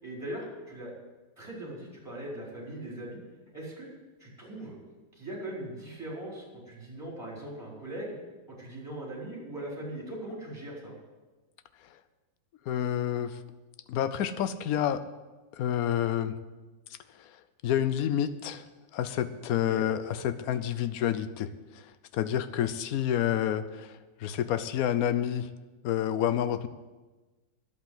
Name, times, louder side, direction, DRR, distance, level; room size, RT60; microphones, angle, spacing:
voice 1, 0.0-0.9 1.4-3.2 3.5-3.9 4.2-4.7 5.1-8.1 8.6-10.9 19.5-19.8, right 1 dB, 10° right, -5 dB, 4.4 m, -40 dB
voice 2, 12.7-13.4 13.9-15.0 15.5-16.4 17.2-17.3 17.6-18.6 18.9-25.5 25.8-26.7, left 10 dB, 65° left, 12 dB, 1.0 m, -29 dB
11.0 x 8.5 x 7.9 m, 1.2 s
omnidirectional pair, 2.1 m